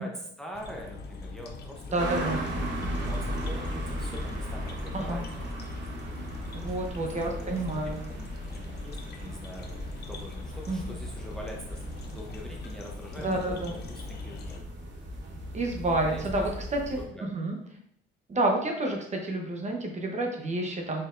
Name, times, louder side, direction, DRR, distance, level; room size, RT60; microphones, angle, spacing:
voice 1, 0.0-2.2 2.6-5.2 6.4-14.6 15.9-17.3, equal, 5° left, -1 dB, 0.7 m, -44 dB
sound 1, 0.5-14.6, left 3 dB, 55° left, 0.6 m, -42 dB
voice 2, 1.9-2.4 4.9-5.2 6.5-8.0 10.7-10.9 13.2-13.7 15.5-17.6 18.3-21.0, right 2 dB, 35° right, 1 dB, 0.8 m, -29 dB
sound 2, 2.0-17.1, equal, 65° right, 0.9 m, -37 dB
4.4 x 3.3 x 2.5 m, 0.71 s
cardioid pair, 90°, 20 cm